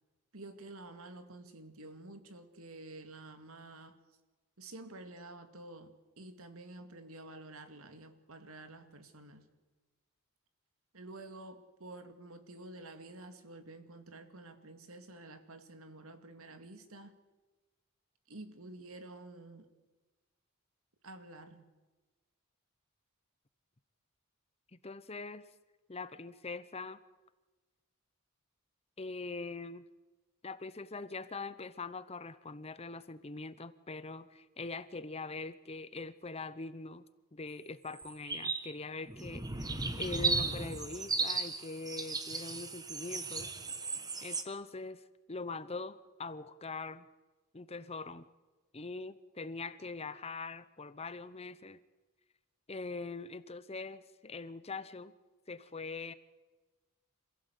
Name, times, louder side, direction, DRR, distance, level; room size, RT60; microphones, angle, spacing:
voice 1, 0.3-4.0 4.6-9.5 10.9-17.1 18.3-19.7 21.0-21.7, right 2 dB, 75° right, 8 dB, 2.3 m, -50 dB
voice 2, 24.7-25.5 25.9-27.0 29.0-29.8 30.4-37.0 37.3-43.5 44.2-47.1 47.5-48.3 48.7-51.8 52.7-55.1 55.5-56.1, left 3 dB, 30° left, 14 dB, 0.8 m, -43 dB
sound 1, 38.0-38.7 39.0-44.4, right 4 dB, 15° right, 1.4 m, -35 dB
27.0 x 16.5 x 8.3 m, 1.2 s
head